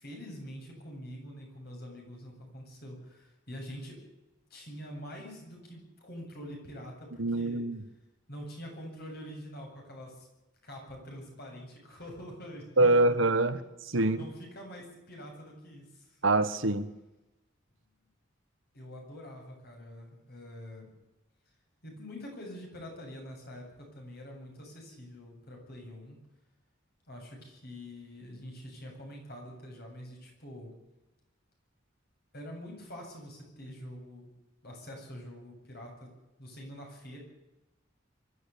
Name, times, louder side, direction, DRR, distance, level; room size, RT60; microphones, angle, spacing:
voice 1, 0.0-4.0 4.5-7.6 8.3-10.3 10.6-13.2 13.9-16.2 18.7-20.9 21.8-26.2 27.1-30.7 32.3-34.3 34.6-36.1 36.4-37.2, equal, 55° left, 8.0 m, -45 dB
voice 2, 7.2-7.8 12.8-14.2 16.2-16.9, right 2 dB, 85° right, 1.3 m, -25 dB
24.0 x 13.0 x 8.6 m
head